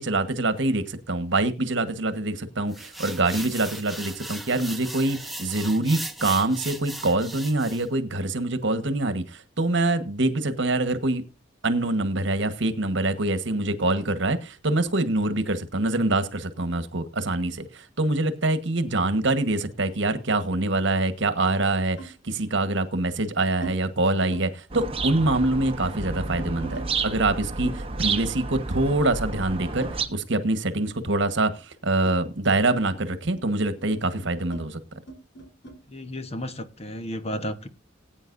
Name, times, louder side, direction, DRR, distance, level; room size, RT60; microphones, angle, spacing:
voice 1, 0.0-11.2 11.6-34.8, right 2 dB, 65° right, 1.4 m, -25 dB
sound 1, 2.7-7.9, right 1 dB, ahead, 1.0 m, -37 dB
sound 2, 19.7-20.7 22.0-22.2 23.0-23.8 24.1-24.5 24.7-26.9 27.6-30.5 30.8-35.8, right 2 dB, 65° left, 3.8 m, -43 dB
sound 3, 24.7-30.1, right 4 dB, 30° right, 1.2 m, -31 dB
voice 2, 35.9-37.7, equal, 35° left, 1.1 m, -33 dB
19.5 x 9.1 x 2.6 m
head